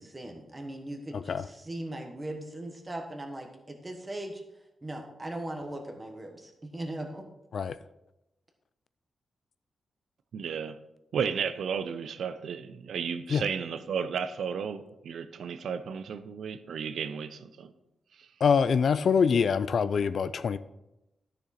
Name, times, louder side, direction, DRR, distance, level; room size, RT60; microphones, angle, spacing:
voice 1, 0.0-4.4 4.8-7.2, right 1 dB, 15° right, 1.2 m, -39 dB
voice 2, 1.1-1.5 7.5-7.8 13.3-13.4 18.4-20.6, left 6 dB, 55° left, 0.3 m, -25 dB
voice 3, 10.3-10.8 11.1-17.7 18.2-18.3, right 6 dB, 85° right, 0.6 m, -33 dB
12.5 x 6.7 x 4.2 m
wide cardioid pair, 175°, 0 cm